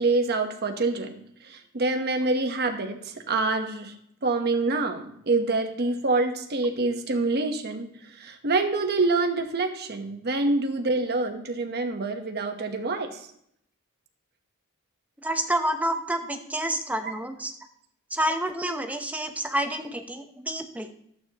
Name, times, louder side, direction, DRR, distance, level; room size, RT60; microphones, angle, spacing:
voice 1, 0.0-3.9 4.2-7.9 8.2-13.2 17.0-17.1, right 3 dB, 50° right, 5 dB, 1.1 m, -26 dB
voice 2, 15.2-17.5 18.1-20.9, right 1 dB, 5° right, 5 dB, 0.8 m, -28 dB
12.0 x 8.4 x 3.0 m, 0.70 s
head